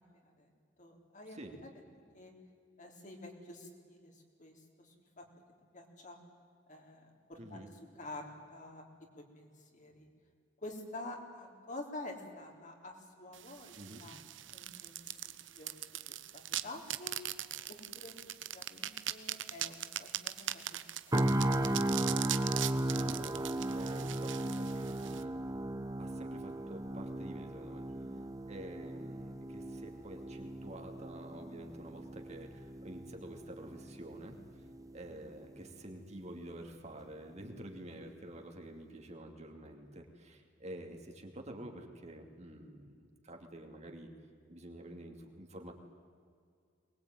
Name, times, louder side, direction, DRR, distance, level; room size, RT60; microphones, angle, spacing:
voice 1, 0.1-0.5 0.8-1.4 2.1-2.3 2.8-5.2 5.7-6.2 6.7-7.7 8.0-8.8 9.2-10.1 10.6-14.3 14.5-15.0 15.2-15.7 16.3-17.2 17.7-18.1 18.5-20.3 20.7-20.8 21.4-21.5 27.9-28.0, left 2 dB, 40° left, 2 dB, 3.6 m, -48 dB
voice 2, 7.4-7.7 13.8-14.0 23.0-25.4 26.0-28.2 28.5-34.4 34.9-44.1 44.5-45.7, right 1 dB, 35° right, 3 dB, 2.6 m, -49 dB
sound 1, 13.3-25.2, right 13 dB, 75° right, 0.9 m, -41 dB
sound 2, 21.1-35.1 35.5-35.7, right 1 dB, 20° right, 1.0 m, -36 dB
23.0 x 20.0 x 9.3 m, 2.2 s
head